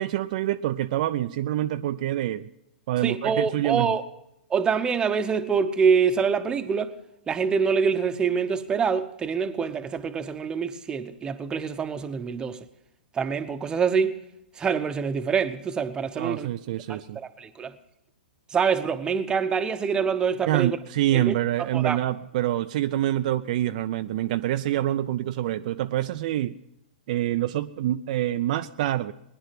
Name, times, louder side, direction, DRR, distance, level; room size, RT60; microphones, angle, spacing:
voice 1, 0.0-2.5 2.9-3.9 16.2-17.2 20.5-26.5 27.1-29.1, right 13 dB, 50° right, 0.5 m, -26 dB
voice 2, 3.0-4.0 4.5-6.9 7.3-12.6 13.1-14.1 14.6-16.5 16.9-17.7 18.5-20.8 21.1-21.3 21.7-22.0, right 6 dB, 15° right, 0.9 m, -25 dB
20.0 x 10.5 x 5.9 m
hypercardioid pair, 130°, 5 cm